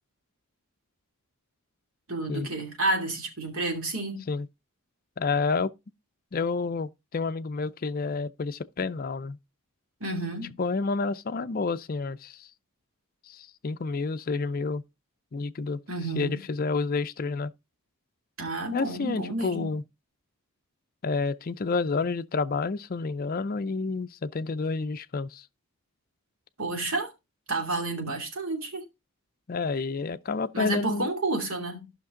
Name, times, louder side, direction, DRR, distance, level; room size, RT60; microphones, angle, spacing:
voice 1, 2.1-4.3 10.0-10.6 15.9-16.4 18.4-19.7 26.6-27.1 27.5-28.8 30.5-31.8, right 2 dB, 70° right, 2.7 m, -30 dB
voice 2, 5.2-5.7 6.3-9.4 10.6-12.5 13.3-14.8 15.3-15.8 16.2-17.5 18.7-19.8 21.0-25.4 29.5-31.1, left 4 dB, 40° left, 0.4 m, -29 dB
13.0 x 5.8 x 3.7 m
head